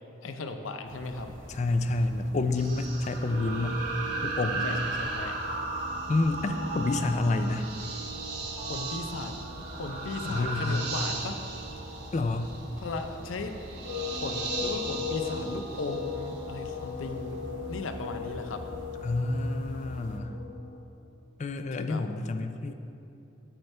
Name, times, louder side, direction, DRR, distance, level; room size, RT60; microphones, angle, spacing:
voice 1, 0.2-1.3 4.6-5.6 8.7-11.4 12.8-13.7 14.1-17.4 17.7-18.6 21.8-22.0, left 3 dB, 90° left, 7 dB, 0.6 m, -37 dB
sound 1, 0.8-20.2, equal, 80° right, 0.8 m, -45 dB
voice 2, 1.5-3.8 4.2-4.7 6.1-7.7 10.2-10.9 12.1-12.5 19.0-20.3 21.4-22.7, left 2 dB, 35° left, 9 dB, 0.3 m, -28 dB
sound 2, 2.6-16.4, right 3 dB, 55° right, 1.1 m, -36 dB
sound 3, 3.2-20.8, left 3 dB, 60° left, 1.1 m, -40 dB
8.8 x 7.9 x 3.3 m, 2.9 s
head